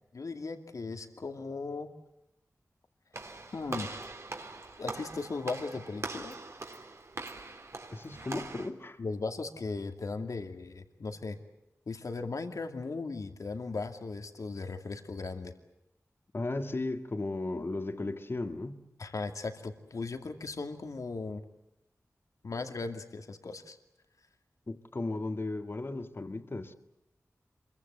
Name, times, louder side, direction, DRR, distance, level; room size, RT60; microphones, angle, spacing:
voice 1, 0.1-1.9 3.5-3.9 4.8-6.4 9.0-11.4 11.9-15.5 19.0-21.4 22.4-23.8, left 3 dB, 80° left, 2.4 m, -37 dB
Walk footsteps / Slam, 3.1-8.7, right 3 dB, 55° right, 3.7 m, -42 dB
voice 2, 7.9-9.0 16.3-18.8 24.7-26.7, left 2 dB, 45° left, 1.9 m, -35 dB
27.5 x 23.5 x 8.1 m
wide cardioid pair, 90°, 6 cm